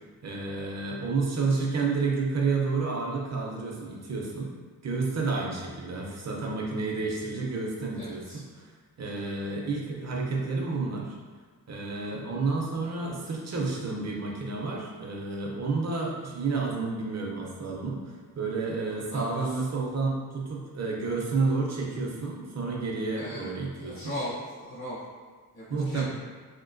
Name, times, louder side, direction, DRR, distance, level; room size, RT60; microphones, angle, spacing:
voice 1, 0.2-4.5 4.8-8.2 8.6-8.7 9.0-11.1 11.7-23.9 25.7-26.0, right 4 dB, 45° right, -2 dB, 0.6 m, -30 dB
voice 2, 7.9-8.4 17.6-17.8 19.1-19.6 23.1-25.0 25.5-26.0, equal, 65° left, -9 dB, 1.0 m, -38 dB
3.0 x 2.9 x 2.5 m, 1.5 s
wide cardioid pair, 115°, 37 cm